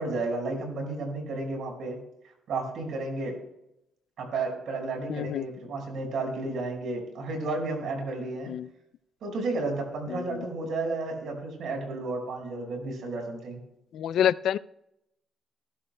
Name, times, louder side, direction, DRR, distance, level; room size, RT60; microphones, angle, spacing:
voice 1, 0.0-2.0 2.5-3.4 4.2-8.5 9.2-13.6, right 3 dB, 70° right, 3 dB, 5.2 m, -32 dB
voice 2, 5.1-5.4 8.5-8.7 10.1-10.5 13.9-14.6, left 10 dB, 75° left, 17 dB, 0.4 m, -27 dB
19.5 x 13.0 x 2.2 m, 0.83 s
cardioid pair, 90°, 0 cm